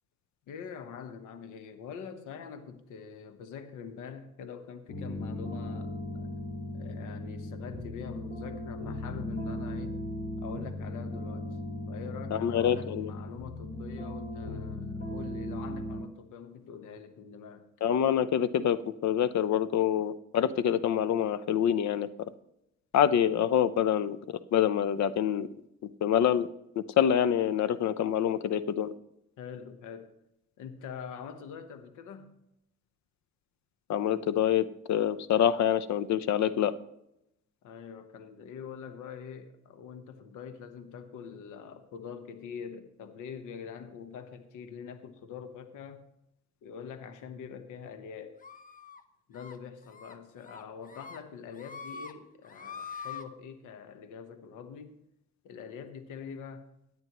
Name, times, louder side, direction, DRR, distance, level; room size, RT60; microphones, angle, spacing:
voice 1, 0.5-6.4 6.7-10.0 10.4-11.6 11.9-17.7 29.4-30.1 30.6-32.3 37.6-46.0 46.6-48.4 49.3-55.0 55.4-56.7, left 7 dB, 85° left, 9 dB, 1.2 m, -44 dB
sound 1, 4.9-16.0, left 1 dB, 45° left, 3.9 m, -37 dB
voice 2, 12.3-13.1 17.8-22.3 22.9-25.5 26.0-26.5 27.0-28.9 33.9-36.7, left 9 dB, 65° left, 15 dB, 0.7 m, -26 dB
sound 2, 48.4-49.0 49.4-49.6 49.9-50.1 50.5-51.2 51.5-52.1 52.4-53.2, left 6 dB, 25° left, 1.1 m, -43 dB
17.0 x 9.5 x 3.0 m, 0.81 s
cardioid pair, 90°, 30 cm